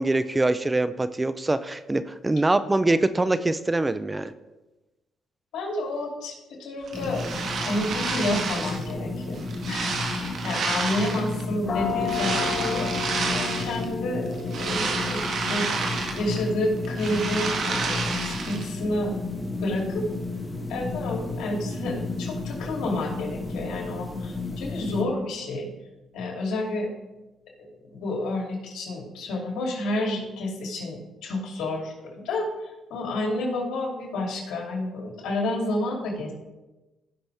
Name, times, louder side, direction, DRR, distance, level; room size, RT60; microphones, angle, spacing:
voice 1, 0.0-4.3, right 2 dB, 15° right, 13 dB, 0.5 m, -24 dB
voice 2, 5.5-7.4 7.6-12.9 13.3-19.1 19.5-20.1 20.7-25.7 26.1-26.9 27.6-36.3, left 1 dB, 80° left, 0 dB, 2.9 m, -30 dB
sound 1, 6.9-25.0, left 3 dB, 10° left, 1.8 m, -33 dB
sound 2, 6.9-8.9 9.3-11.4 12.0-13.8 14.3-16.5 16.8-18.7, right 4 dB, 65° right, 1.7 m, -30 dB
sound 3, 11.6-23.2, left 5 dB, 40° left, 2.0 m, -36 dB
16.5 x 6.0 x 3.4 m, 1.1 s
cardioid pair, 90°, 0 cm